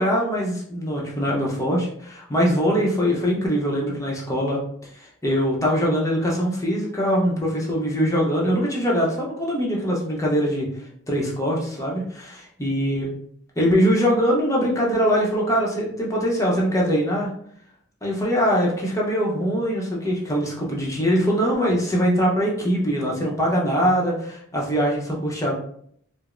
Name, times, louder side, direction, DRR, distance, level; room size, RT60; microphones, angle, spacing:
voice 1, 0.0-4.6 5.2-10.7 11.1-13.1 13.6-17.3 18.0-25.5, equal, 15° left, -3 dB, 0.7 m, -22 dB
4.8 x 2.0 x 2.5 m, 0.65 s
head